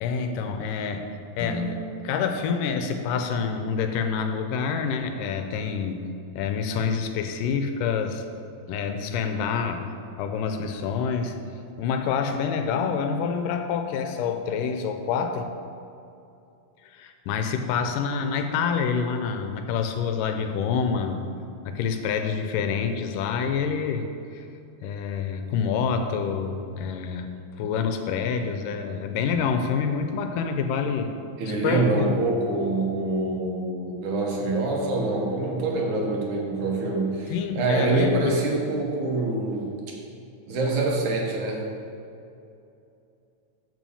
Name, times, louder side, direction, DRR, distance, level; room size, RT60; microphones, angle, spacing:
voice 1, 0.0-1.8 2.0-6.1 6.4-8.2 8.7-9.9 10.2-11.4 11.8-15.5 16.8-21.3 21.7-24.1 24.3-24.5 24.8-27.3 27.6-31.1 31.5-32.1 37.3-38.4 40.6-40.7, left 6 dB, 80° left, 7 dB, 2.2 m, -27 dB
sound 1, 1.4-3.8, equal, 60° left, 1.5 m, -37 dB
voice 2, 31.4-39.7 40.5-41.7, right 2 dB, 70° right, -1 dB, 2.5 m, -25 dB
7.0 x 6.3 x 6.9 m, 2.6 s
omnidirectional pair, 3.9 m